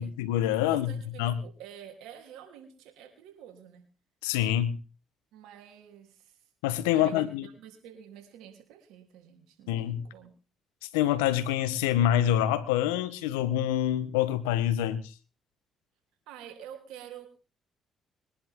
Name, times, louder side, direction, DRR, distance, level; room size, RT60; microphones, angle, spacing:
voice 1, 0.0-0.9 1.2-1.3 4.2-4.8 6.6-7.5 9.7-10.0 10.8-15.1, left 11 dB, 90° left, 1.1 m, -26 dB
voice 2, 0.6-3.9 5.3-6.4 6.9-10.3 16.3-17.3, right 9 dB, 80° right, 3.4 m, -48 dB
22.0 x 11.0 x 3.7 m
hypercardioid pair, 50°, 0 cm